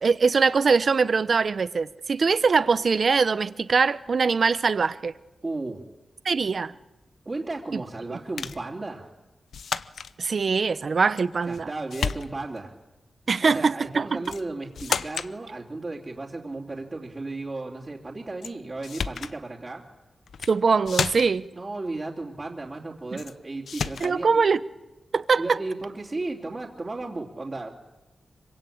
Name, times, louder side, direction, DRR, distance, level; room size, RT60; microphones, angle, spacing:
voice 1, 0.0-5.1 6.2-6.7 7.7-7.8 8.1-8.2 10.2-11.7 13.3-14.2 20.5-21.5 23.1-23.2 24.0-24.6 25.1-25.6, right 5 dB, 50° right, 14 dB, 0.9 m, -22 dB
voice 2, 5.4-5.8 7.2-9.1 11.4-12.8 13.4-19.8 21.5-24.4 25.4-27.7, right 2 dB, 25° right, -3 dB, 3.0 m, -34 dB
sound 1, 8.4-8.7 9.5-10.1 11.2-11.6 11.9-12.6 14.2-14.5 14.8-15.3 18.4-18.5 18.8-19.4 20.3-20.6 20.9-21.5 23.2-23.3 23.7-24.2, left 6 dB, 85° left, 0.9 m, -31 dB
26.0 x 24.5 x 8.8 m, 0.98 s
wide cardioid pair, 160°, 0 cm